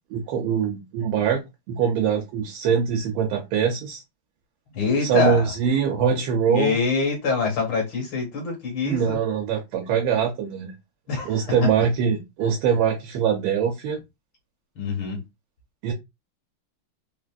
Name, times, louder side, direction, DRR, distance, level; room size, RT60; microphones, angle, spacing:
voice 1, 0.1-1.4 1.7-4.0 5.0-6.8 8.8-10.7 11.2-14.0 15.8-15.9, right 7 dB, 80° right, 1.5 m, -23 dB
voice 2, 4.7-5.5 6.5-9.2 11.1-11.5 14.8-15.2, left 4 dB, 65° left, 1.9 m, -25 dB
3.9 x 2.4 x 2.2 m
omnidirectional pair, 2.4 m